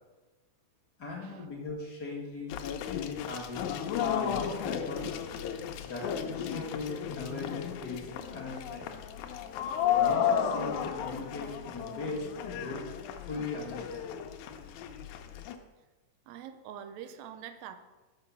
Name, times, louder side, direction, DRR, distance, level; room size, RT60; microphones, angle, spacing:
voice 1, 1.0-2.5 3.2-3.6 4.0-5.1 5.8-8.9 9.9-12.8 13.2-14.1, left 3 dB, 40° left, -3 dB, 1.8 m, -39 dB
sound 1, 2.5-15.6, left 8 dB, 90° left, 2.1 m, -33 dB
voice 2, 16.3-17.8, right 9 dB, 80° right, 9 dB, 1.8 m, -44 dB
6.2 x 5.6 x 6.9 m, 1.2 s
omnidirectional pair, 3.3 m